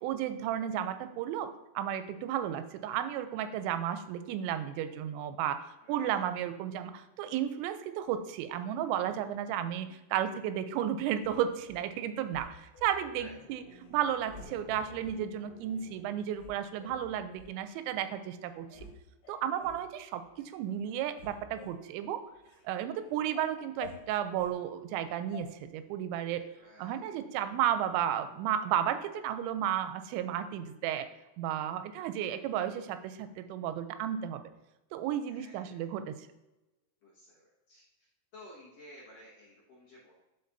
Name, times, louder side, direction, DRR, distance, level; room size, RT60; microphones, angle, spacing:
voice 1, 0.0-1.5 1.8-5.6 5.9-13.6 13.9-18.8 19.3-20.2 20.5-22.2 22.7-26.4 26.8-31.1 31.4-34.4 34.9-36.2, right 10 dB, 90° right, 11 dB, 2.9 m, -33 dB
voice 2, 5.8-6.3 13.2-13.3 26.6-27.0 35.3-35.9 37.0-37.9 38.3-40.1, left 1 dB, 65° left, -7 dB, 1.7 m, -54 dB
sound 1, 11.2-11.9 12.3-13.3 13.7-13.9 14.3-15.2 15.8-15.9 16.4-17.5 18.1-18.2 18.5-19.0 19.2-19.9 20.3-20.6 20.8-22.7 23.0-24.6 25.3-25.5, left 4 dB, 85° left, 3.5 m, -51 dB
sound 2, 11.6-12.1 12.8-16.0, left 2 dB, 50° left, 2.2 m, -57 dB
12.0 x 4.2 x 2.6 m, 1.0 s
omnidirectional pair, 5.1 m